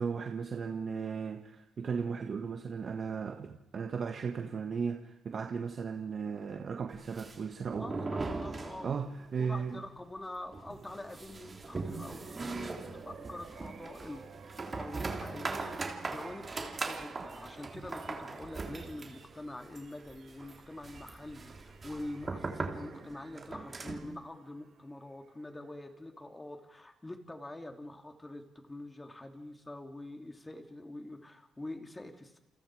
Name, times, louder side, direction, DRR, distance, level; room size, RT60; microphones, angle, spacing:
voice 1, 0.0-7.9 8.8-9.8, right 6 dB, 45° right, 5 dB, 1.6 m, -36 dB
sound 1, 6.9-9.3 9.5-9.6 10.0-10.1 10.5-24.2, right 3 dB, 30° right, 3.4 m, -40 dB
voice 2, 7.7-8.9 9.4-14.2 14.7-32.4, left 1 dB, 15° left, 5 dB, 3.3 m, -45 dB
sound 2, 10.7-26.6, right 5 dB, 65° right, 5.3 m, -56 dB
29.5 x 28.5 x 5.0 m, 0.91 s
cardioid pair, 90°, 0 cm